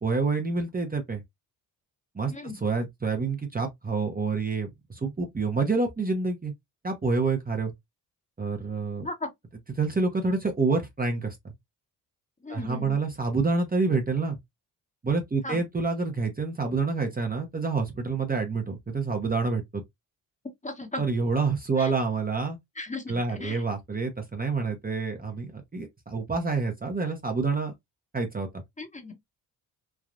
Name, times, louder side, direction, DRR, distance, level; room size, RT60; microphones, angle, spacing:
voice 1, 0.0-1.2 2.1-2.3 2.6-6.5 6.8-7.7 8.4-9.1 9.8-11.4 12.5-14.4 15.0-19.8 21.0-22.6 23.1-27.7 28.1-28.6, right 4 dB, 20° right, 0.9 m, -27 dB
voice 2, 12.4-13.0 15.4-15.6 20.6-21.0 21.8-21.9 22.8-23.6 28.8-29.1, left 2 dB, 15° left, 1.1 m, -36 dB
3.4 x 2.3 x 2.5 m
supercardioid pair, 50°, 42 cm